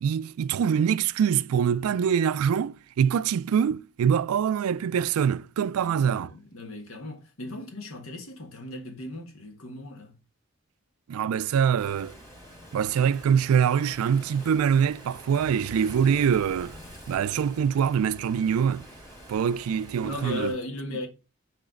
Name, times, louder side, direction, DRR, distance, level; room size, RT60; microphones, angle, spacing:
voice 1, 0.0-6.3 11.1-12.1 12.7-16.8 17.1-18.8 19.3-20.5, right 7 dB, 90° right, 0.3 m, -24 dB
voice 2, 5.8-10.1 20.0-21.1, left 2 dB, 80° left, 1.4 m, -37 dB
Waves surf, 11.8-20.5, equal, 15° left, 2.2 m, -46 dB
6.2 x 3.3 x 5.1 m
head